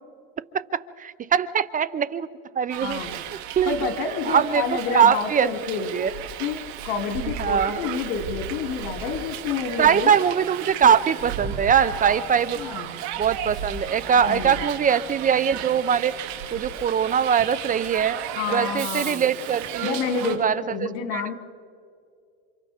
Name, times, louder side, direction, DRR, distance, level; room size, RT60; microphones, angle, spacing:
voice 1, 0.5-2.3 2.5-3.0 3.6-3.9 4.2-5.5 5.7-6.1 7.2-7.8 9.8-12.6 13.2-16.1 16.5-18.2 18.5-20.0 20.2-21.3, right 8 dB, 25° right, 16 dB, 0.6 m, -22 dB
Hiss, 2.7-20.4, right 9 dB, 65° right, 2.5 m, -34 dB
voice 2, 2.8-3.2 3.7-5.9 6.4-6.6 6.8-10.1 12.6-13.0 14.2-14.6 18.4-19.3 19.8-20.4 20.7-21.3, left 6 dB, 70° left, 5 dB, 2.9 m, -29 dB
30.0 x 27.0 x 3.6 m, 2.3 s
supercardioid pair, 115°, 31 cm